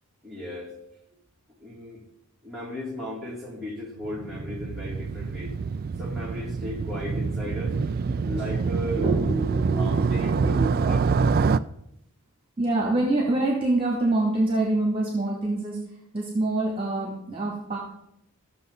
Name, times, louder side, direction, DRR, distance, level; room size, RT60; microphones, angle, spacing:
voice 1, 0.2-0.7 1.6-2.0 2.4-5.5 6.0-7.8 8.2-9.1 9.7-10.4 10.8-11.0, equal, ahead, -5 dB, 2.9 m, -35 dB
Motorcycle, 4.0-11.6, right 4 dB, 40° right, 0.3 m, -26 dB
voice 2, 8.9-10.8 12.6-15.8 16.1-17.8, right 2 dB, 25° right, -2 dB, 2.3 m, -26 dB
15.0 x 6.9 x 4.0 m, 0.77 s
head